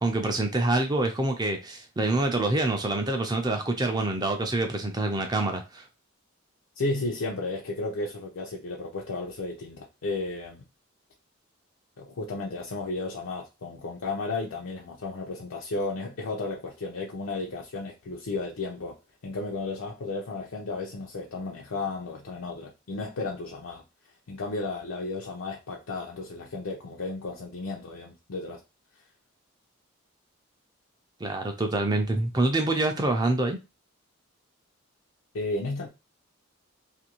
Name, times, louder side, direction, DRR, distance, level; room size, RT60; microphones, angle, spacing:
voice 1, 0.0-5.8 31.2-33.6, right 2 dB, 20° right, 0.4 m, -26 dB
voice 2, 6.8-10.6 12.0-19.0 19.2-23.8 24.3-28.6 35.3-35.9, left 3 dB, 80° left, 0.5 m, -33 dB
2.6 x 2.5 x 2.9 m
head